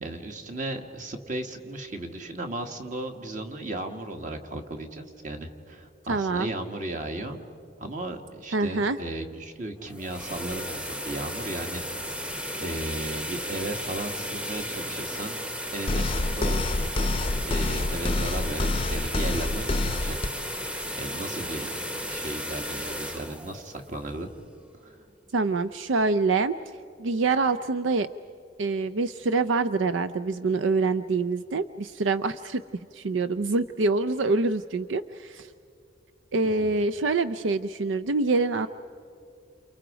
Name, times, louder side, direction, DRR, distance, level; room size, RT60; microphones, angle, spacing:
voice 1, 0.0-7.4 7.8-11.8 12.6-15.4 15.7-17.1 17.4-20.2 20.6-21.7 22.1-24.3 24.8-25.0 36.6-36.8, right 1 dB, 45° right, 4 dB, 1.9 m, -35 dB
voice 2, 6.1-6.5 8.5-9.0 25.3-26.6 27.0-28.1 28.6-32.6 32.9-35.5 36.3-38.7, right 3 dB, 75° right, 12 dB, 0.5 m, -25 dB
sound 1, 9.8-24.7, equal, 5° right, 0.9 m, -35 dB
sound 2, 15.9-20.3, left 2 dB, 30° left, 0.6 m, -27 dB
29.5 x 28.5 x 5.1 m, 2.6 s
head